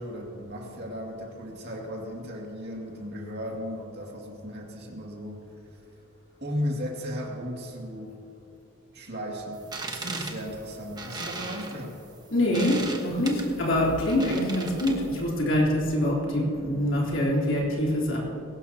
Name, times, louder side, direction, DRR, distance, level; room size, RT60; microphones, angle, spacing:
voice 1, 0.0-5.5 6.4-8.2 8.9-12.0, equal, 50° right, -1 dB, 2.4 m, -35 dB
sound 1, 9.6-15.2, right 3 dB, 20° right, 1.3 m, -38 dB
voice 2, 12.3-18.2, left 1 dB, 60° left, -4 dB, 3.8 m, -25 dB
21.0 x 18.0 x 2.9 m, 2.9 s
head